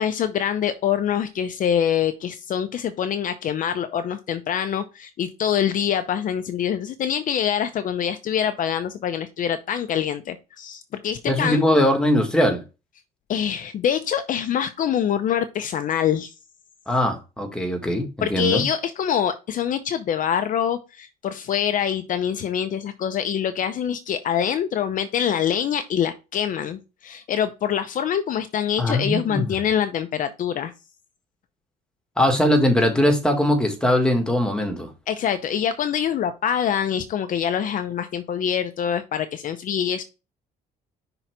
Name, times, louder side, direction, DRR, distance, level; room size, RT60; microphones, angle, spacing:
voice 1, 0.0-11.6 13.3-16.3 18.2-30.7 35.1-40.0, left 9 dB, 50° left, 0.6 m, -25 dB
voice 2, 11.3-12.6 16.9-18.6 28.8-29.5 32.2-34.9, left 1 dB, 5° left, 1.7 m, -21 dB
5.8 x 3.9 x 4.6 m
cardioid pair, 110°, 17 cm